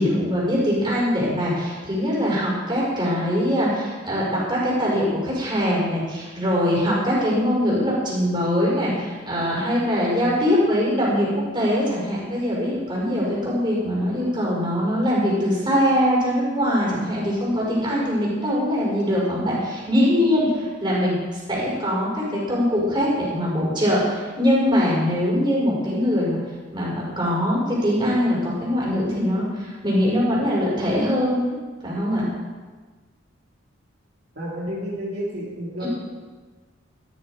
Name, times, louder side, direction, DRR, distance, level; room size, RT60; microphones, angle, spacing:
voice 1, 0.0-11.3 11.5-26.4 26.7-31.6 31.8-32.3 35.8-35.9, equal, 25° right, -5 dB, 5.7 m, -22 dB
voice 2, 34.3-35.9, equal, 55° right, -6 dB, 3.3 m, -30 dB
14.0 x 14.0 x 5.0 m, 1.4 s
head